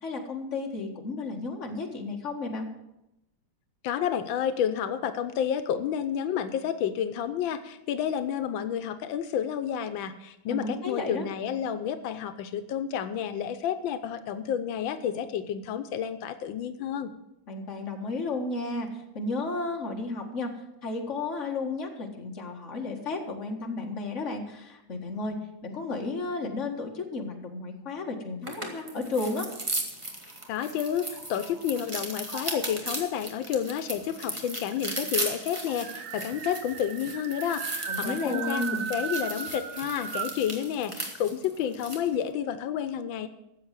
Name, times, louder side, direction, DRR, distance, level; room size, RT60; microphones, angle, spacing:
voice 1, 0.0-2.7 10.5-11.3 17.5-20.5 20.8-25.4 25.6-29.5 37.9-38.9, left 3 dB, 40° left, 1 dB, 2.1 m, -33 dB
voice 2, 3.8-17.1 30.5-38.6 38.9-43.3, left 9 dB, 90° left, 10 dB, 1.5 m, -30 dB
sound 1, 28.4-42.1, right 1 dB, 15° right, 1.5 m, -37 dB
sound 2, 30.3-31.8 32.3-33.0 34.0-34.1 34.3-34.4 34.7-40.5, right 7 dB, 85° right, 1.9 m, -37 dB
13.5 x 7.9 x 7.5 m, 0.88 s
omnidirectional pair, 2.1 m